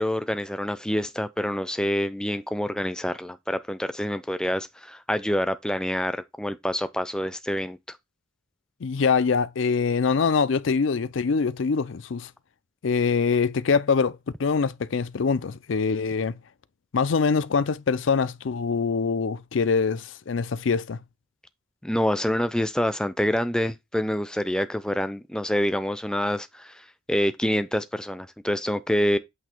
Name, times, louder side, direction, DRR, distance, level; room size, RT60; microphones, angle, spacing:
voice 1, 0.0-8.0 21.8-29.2, equal, 5° left, 0.5 m, -27 dB
voice 2, 8.8-12.3 12.8-16.3 16.9-21.0, left 5 dB, 65° left, 0.5 m, -24 dB
8.3 x 2.8 x 4.5 m
head